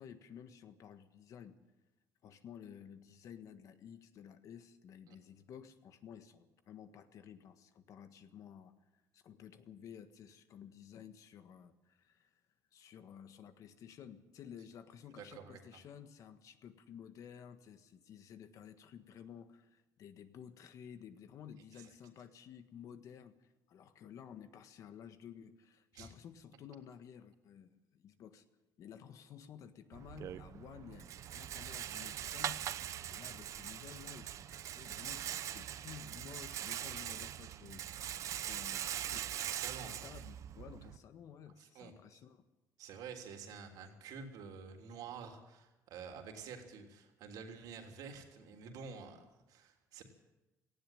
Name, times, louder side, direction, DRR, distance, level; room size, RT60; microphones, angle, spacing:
voice 1, 0.0-1.6 2.2-8.7 9.1-12.3 12.7-28.4 28.8-32.8 33.1-42.4, left 8 dB, 60° left, 10 dB, 1.6 m, -53 dB
voice 2, 15.2-15.8 21.7-21.9 25.9-26.1 39.5-39.9 41.6-42.2 42.8-50.0, right 6 dB, 80° right, 3 dB, 3.4 m, -49 dB
Rattle, 29.9-41.0, right 11 dB, 55° right, 0.7 m, -42 dB
18.0 x 16.0 x 9.2 m, 1.0 s
cardioid pair, 145°, 6 cm